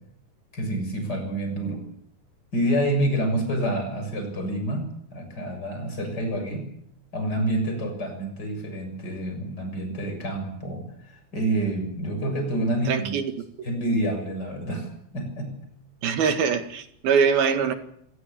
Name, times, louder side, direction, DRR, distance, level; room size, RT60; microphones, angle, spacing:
voice 1, 0.5-1.8 2.5-6.7 7.1-13.1 13.6-15.5, right 1 dB, 25° left, 5 dB, 7.2 m, -28 dB
voice 2, 12.9-13.2 16.0-17.7, right 6 dB, 75° right, 7 dB, 3.8 m, -23 dB
26.5 x 18.5 x 7.1 m, 0.70 s
omnidirectional pair, 4.4 m